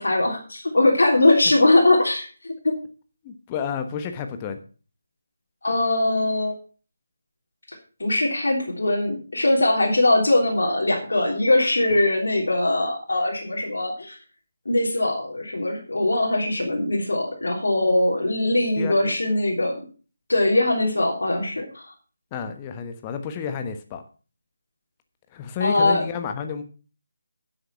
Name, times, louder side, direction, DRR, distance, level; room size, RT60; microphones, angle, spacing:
voice 1, 0.0-2.8 5.6-6.5 8.0-14.2 14.6-19.8 20.3-21.9 25.6-26.0, left 2 dB, 65° left, -1 dB, 3.4 m, -21 dB
voice 2, 3.2-4.6 18.8-19.1 22.3-24.0 25.3-26.6, left 7 dB, 20° left, 7 dB, 1.2 m, -30 dB
11.0 x 7.8 x 5.7 m, 0.37 s
figure-of-eight pair, 155°, 0 cm